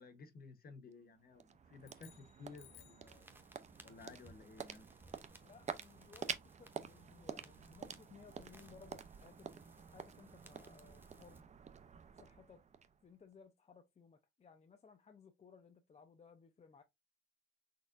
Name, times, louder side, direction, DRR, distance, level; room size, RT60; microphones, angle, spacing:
voice 1, 0.0-3.3 3.8-4.9, left 4 dB, 50° left, 1.1 m, -56 dB
sound 1, 0.9-13.3, right 6 dB, 35° right, 0.6 m, -49 dB
sound 2, 1.8-3.2, left 14 dB, 80° left, 0.5 m, -62 dB
sound 3, 3.1-11.4, right 1 dB, 10° right, 0.9 m, -63 dB
voice 2, 5.4-11.5 12.1-12.6 13.0-16.8, left 5 dB, 35° left, 0.6 m, -61 dB
4.1 x 3.4 x 2.5 m
cardioid pair, 90°, 20 cm